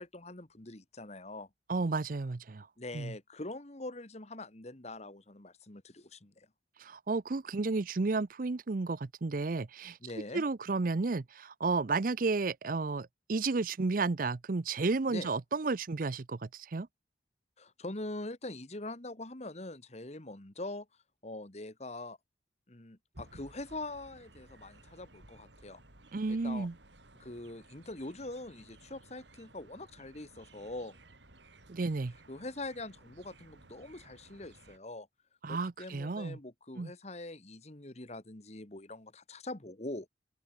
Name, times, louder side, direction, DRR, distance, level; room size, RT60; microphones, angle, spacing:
voice 1, 0.0-1.5 2.8-6.5 10.0-10.4 15.1-15.3 17.6-20.9 21.2-22.2 22.7-25.8 26.3-26.7 27.2-31.0 32.3-35.1 35.5-40.1, left 2 dB, 35° left, 1.7 m, -43 dB
voice 2, 1.7-2.7 2.9-3.1 6.8-10.0 10.3-16.9 26.1-26.7 31.7-32.1 35.4-36.4 36.8-36.9, right 3 dB, 50° right, 0.6 m, -32 dB
sound 1, 23.1-34.8, right 2 dB, 75° right, 5.1 m, -57 dB
open air
head